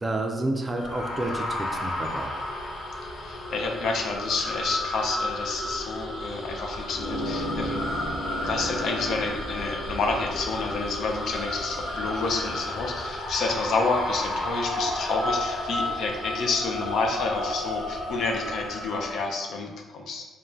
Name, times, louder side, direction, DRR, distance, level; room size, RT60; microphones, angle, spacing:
voice 1, 0.0-2.4, right 2 dB, 25° right, 3 dB, 0.4 m, -30 dB
sound 1, 0.8-19.2, left 1 dB, 85° left, 0.8 m, -32 dB
voice 2, 3.2-7.8 8.3-20.2, left 3 dB, 70° left, 2 dB, 0.4 m, -29 dB
sound 2, 6.9-12.2, equal, 25° left, 0.7 m, -36 dB
2.5 x 2.1 x 3.1 m, 1.2 s
cardioid pair, 90°, 0 cm